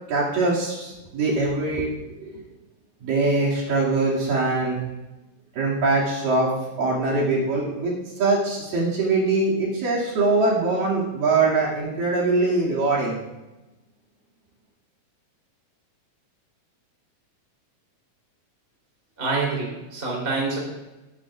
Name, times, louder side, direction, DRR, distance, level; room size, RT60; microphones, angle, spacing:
voice 1, 0.1-2.4 3.0-4.8 5.6-6.5 6.8-13.2, right 3 dB, 70° right, -5 dB, 4.0 m, -23 dB
voice 2, 19.2-20.6, right 3 dB, 25° right, -3 dB, 3.5 m, -26 dB
20.5 x 9.8 x 2.4 m, 1.0 s
omnidirectional pair, 4.1 m